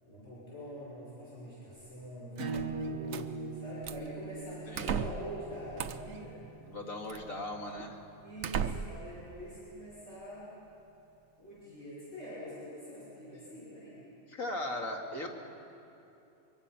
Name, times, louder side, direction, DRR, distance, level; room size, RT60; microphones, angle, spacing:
voice 1, 0.0-6.4 8.2-10.5 11.4-14.0, equal, 50° left, -9 dB, 6.1 m, -44 dB
Acoustic guitar / Strum, 2.4-7.6, right 4 dB, 90° right, 1.8 m, -42 dB
sound 1, 2.5-3.3 3.8-4.1 4.7-5.3 5.8-6.2 7.1-7.2 7.8-7.9 8.4-9.1, right 7 dB, 75° right, 1.2 m, -36 dB
voice 2, 4.7-5.0 6.6-8.0 14.3-15.3, left 1 dB, 75° left, 1 dB, 2.6 m, -38 dB
24.0 x 24.0 x 5.9 m, 2.8 s
omnidirectional pair, 1.5 m